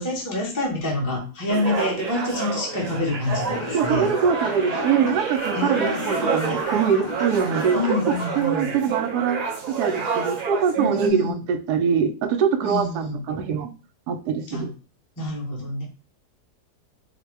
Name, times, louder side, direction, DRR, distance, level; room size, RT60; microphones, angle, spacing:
voice 1, 0.0-4.1 5.5-6.3 7.7-8.7 10.8-11.4 12.6-13.2 14.5-14.7 15.2-15.8, left 2 dB, 15° left, 0.9 m, -27 dB
sound 1, 1.5-11.1, right 5 dB, 55° right, 0.4 m, -28 dB
sound 2, 3.5-8.5, left 3 dB, 35° left, 0.4 m, -35 dB
voice 2, 3.7-7.8 8.4-9.4 9.8-13.7 14.1-14.7, right 7 dB, 80° right, 1.1 m, -23 dB
4.1 x 2.2 x 4.6 m
omnidirectional pair, 1.7 m